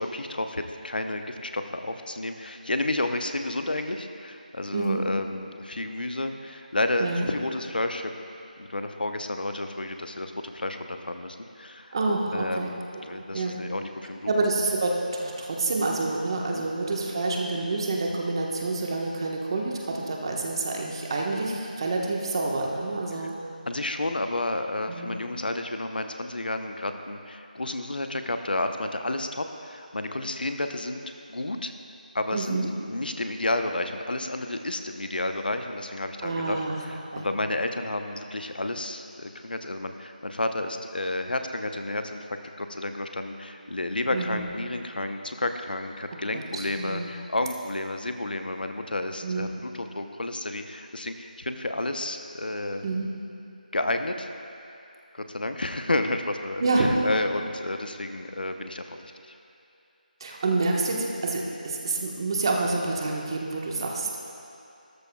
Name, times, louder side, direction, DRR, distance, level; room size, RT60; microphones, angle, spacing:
voice 1, 0.0-8.1 8.6-12.0 12.3-12.8 13.0-14.3 16.5-16.6 23.7-31.7 32.1-32.6 32.9-52.8 53.7-54.3 55.1-59.3, left 2 dB, 85° left, 6 dB, 0.9 m, -31 dB
voice 2, 4.7-5.0 7.0-7.3 11.9-12.7 13.1-13.6 14.3-23.3 24.9-25.2 32.3-32.7 36.2-36.7 37.1-37.3 44.1-44.5 46.3-47.1 49.2-49.5 52.8-53.1 56.6-56.9 60.2-64.2, right 3 dB, 30° right, -1 dB, 1.3 m, -28 dB
17.0 x 13.5 x 2.3 m, 2.6 s
figure-of-eight pair, 170°, 5 cm